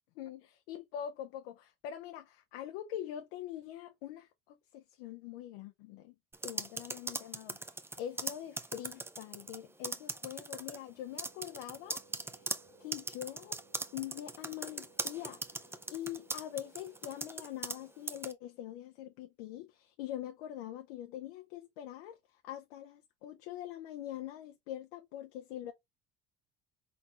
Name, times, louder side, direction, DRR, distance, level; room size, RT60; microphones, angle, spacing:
voice 1, 0.2-6.1 6.4-12.4 12.8-13.6 13.9-15.4 15.9-22.2 22.4-25.7, left 11 dB, 85° left, 0.5 m, -44 dB
sound 1, 6.3-9.6 9.8-10.8 11.2-17.8 18.1-18.3, right 2 dB, 10° right, 0.4 m, -39 dB
Wind instrument woodwind instrument, 11.1-17.6, right 3 dB, 90° right, 1.4 m, -63 dB
4.2 x 3.9 x 2.3 m
supercardioid pair, 80°, 30 cm